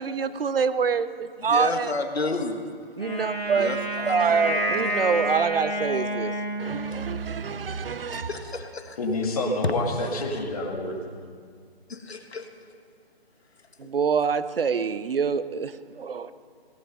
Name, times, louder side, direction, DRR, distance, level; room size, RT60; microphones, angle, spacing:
voice 1, 0.0-1.9 3.0-3.7 4.1-8.3 13.8-16.3, right 6 dB, 65° right, 13 dB, 0.8 m, -26 dB
voice 2, 1.4-2.6 3.6-4.6 8.1-9.0 10.1-10.5 11.9-12.5 13.8-13.9, left 3 dB, 80° left, 6 dB, 1.6 m, -32 dB
Wind instrument woodwind instrument, 3.0-7.2, right 1 dB, 5° left, 0.5 m, -29 dB
voice 3, 9.0-11.0, left 2 dB, 35° left, 0 dB, 2.1 m, -28 dB
17.0 x 11.5 x 5.5 m, 2.1 s
figure-of-eight pair, 160°, 31 cm